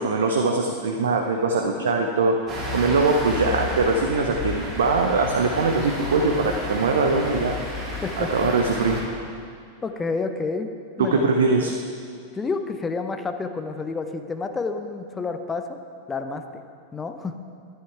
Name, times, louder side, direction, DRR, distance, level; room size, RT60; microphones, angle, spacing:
voice 1, 0.0-2.3 2.7-7.6 8.2-9.0 11.0-11.7, right 3 dB, 65° right, 3 dB, 0.7 m, -22 dB
sound 1, 2.5-9.0, left 1 dB, 20° right, 2.8 m, -31 dB
voice 2, 9.8-10.7 11.0-11.3 11.6-11.8 12.3-15.8 16.1-16.6 16.9-17.4, left 4 dB, 15° left, 7 dB, 0.7 m, -29 dB
11.0 x 10.5 x 4.6 m, 2.3 s
figure-of-eight pair, 90°, 0 cm